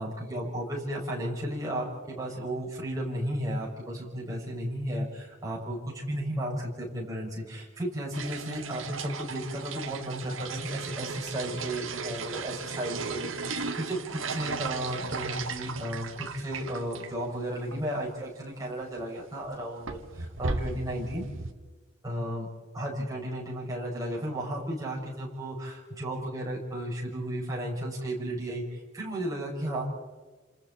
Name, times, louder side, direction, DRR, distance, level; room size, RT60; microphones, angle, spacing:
voice 1, 0.0-21.3 22.0-22.5 22.7-29.8, right 1 dB, 15° right, -4 dB, 6.4 m, -34 dB
sound 1, 8.1-17.1 17.4-17.5 17.7-17.8 18.8-19.0 19.4-21.5, right 4 dB, 75° right, 1.6 m, -36 dB
29.5 x 27.0 x 4.3 m, 1.3 s
head